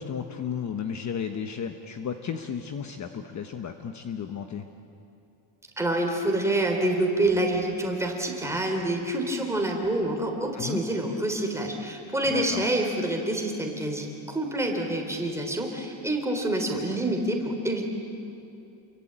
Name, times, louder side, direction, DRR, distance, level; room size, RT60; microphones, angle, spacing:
voice 1, 0.0-4.7 10.5-10.8 12.2-12.7, left 7 dB, 40° left, 6 dB, 1.1 m, -33 dB
voice 2, 5.8-17.8, right 1 dB, 5° right, 1 dB, 3.4 m, -27 dB
29.0 x 23.0 x 8.8 m, 2.7 s
cardioid pair, 170°, 45 cm